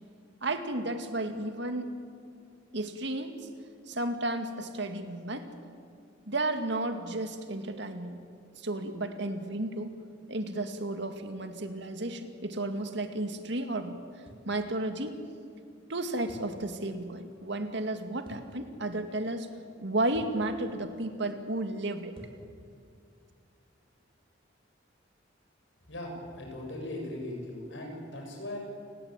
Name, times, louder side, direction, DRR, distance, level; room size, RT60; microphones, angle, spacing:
voice 1, 0.4-1.9 2.7-3.4 3.9-5.5 6.3-8.2 8.6-9.9 10.3-14.0 14.4-15.2 15.9-19.5 19.8-22.1, right 2 dB, 65° right, 7 dB, 2.2 m, -33 dB
sound 1, 14.3-14.5 16.3-16.6 18.2-18.5 20.1-20.4 22.1-22.4, equal, 30° right, 4.1 m, -50 dB
voice 2, 25.9-28.6, left 1 dB, 75° left, 1 dB, 7.5 m, -39 dB
29.5 x 17.5 x 9.1 m, 2.4 s
head